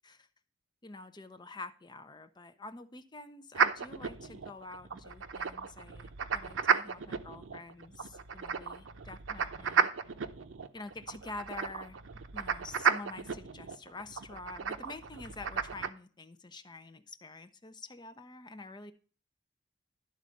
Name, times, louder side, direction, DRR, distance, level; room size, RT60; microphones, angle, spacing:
voice 1, 0.8-9.9 10.7-12.0 12.3-18.9, left 3 dB, 25° left, 9 dB, 0.7 m, -47 dB
sound 1, 3.5-15.9, right 6 dB, 90° right, 0.7 m, -34 dB
11.5 x 4.0 x 6.4 m, 0.39 s
head